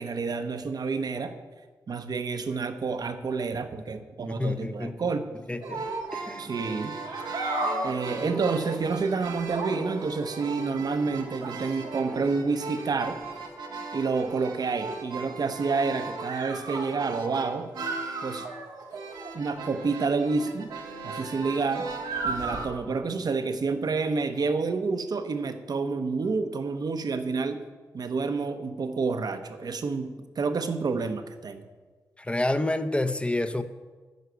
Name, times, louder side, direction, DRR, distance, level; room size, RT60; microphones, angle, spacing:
voice 1, 0.0-1.3 1.9-5.3 6.4-6.9 7.8-13.2 13.9-17.7 18.2-18.4 19.3-20.7 21.0-21.9 22.2-27.6 27.9-31.7, right 4 dB, 60° right, 8 dB, 0.9 m, -29 dB
voice 2, 4.3-5.1 5.5-5.9 6.1-6.4 32.2-33.6, left 2 dB, 15° left, 9 dB, 0.8 m, -28 dB
sound 1, 5.6-22.7, right 3 dB, 90° right, 1.2 m, -35 dB
9.4 x 5.7 x 8.2 m, 1.4 s
supercardioid pair, 45°, 8 cm